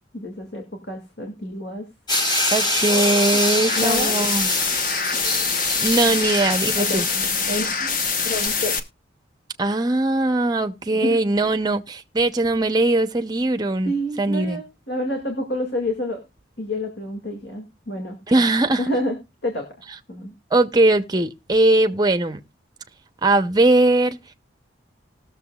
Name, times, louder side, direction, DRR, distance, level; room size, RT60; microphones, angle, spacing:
voice 1, 0.1-1.8 3.3-3.4 3.7-4.3 5.1-5.2 6.0-6.3 6.8-7.0 7.5-8.8 10.9-11.5 13.9-16.2 16.6-18.2 18.8-19.2 19.4-19.6 20.1-20.3, left 1 dB, 65° left, 2.1 m, -29 dB
sound 1, 2.1-8.5, left 1 dB, 20° left, 1.3 m, -25 dB
voice 2, 2.5-4.5 5.8-7.1 9.6-14.6 18.3-18.8 20.5-22.4 23.2-24.2, right 2 dB, 20° right, 0.7 m, -20 dB
sound 2, 3.7-8.8, left 5 dB, 45° left, 1.0 m, -24 dB
19.5 x 6.9 x 2.3 m
head